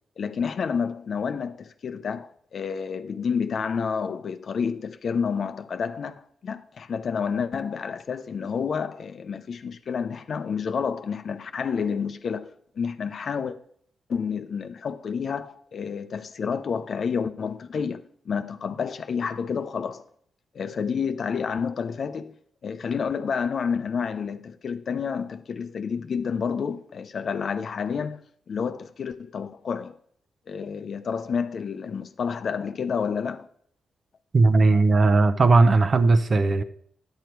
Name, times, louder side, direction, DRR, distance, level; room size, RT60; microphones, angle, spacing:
voice 1, 0.2-13.6 14.1-20.0 20.5-22.4 22.6-28.2 28.5-30.0 30.5-33.5, left 6 dB, 60° left, 0.6 m, -29 dB
voice 2, 34.3-36.6, right 3 dB, 50° right, 0.8 m, -18 dB
10.5 x 6.7 x 4.6 m
cardioid pair, 60°, 0 cm